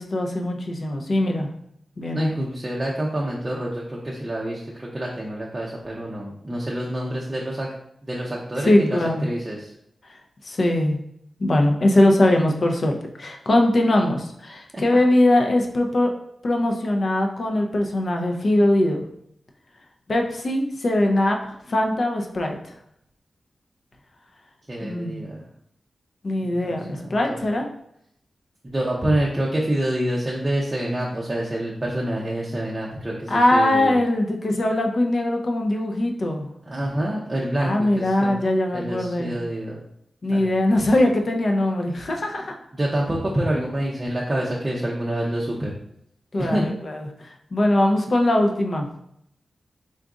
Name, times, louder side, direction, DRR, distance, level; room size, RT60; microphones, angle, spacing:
voice 1, 0.0-1.5 2.0-2.3 8.6-9.3 10.4-11.0 11.4-16.1 16.4-19.0 20.1-21.4 21.7-22.6 24.8-25.2 26.2-27.6 33.3-36.5 37.6-39.4 40.2-42.5 43.5-43.6 46.3-49.0, left 1 dB, 45° left, 2 dB, 0.5 m, -21 dB
voice 2, 2.1-7.7 8.0-9.7 14.7-14.8 24.7-25.4 26.6-27.4 28.7-34.0 36.7-38.3 38.7-39.8 40.3-40.5 42.7-45.7 46.4-46.7, right 1 dB, 20° right, -4 dB, 0.5 m, -27 dB
3.8 x 2.4 x 3.6 m, 0.74 s
wide cardioid pair, 140°, 0 cm